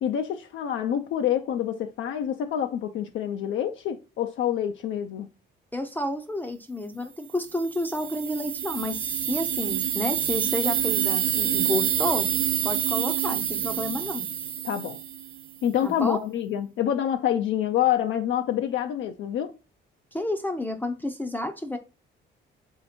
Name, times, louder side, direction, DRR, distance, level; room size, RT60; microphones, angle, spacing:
voice 1, 0.0-5.3 14.6-15.0 15.6-19.5, left 10 dB, 75° left, 0.5 m, -27 dB
voice 2, 5.7-12.3 12.6-14.3 15.8-16.2 20.1-21.8, left 1 dB, 10° left, 0.5 m, -30 dB
sound 1, 7.5-15.4, right 10 dB, 80° right, 0.6 m, -27 dB
3.4 x 2.9 x 4.1 m
cardioid pair, 90°, 20 cm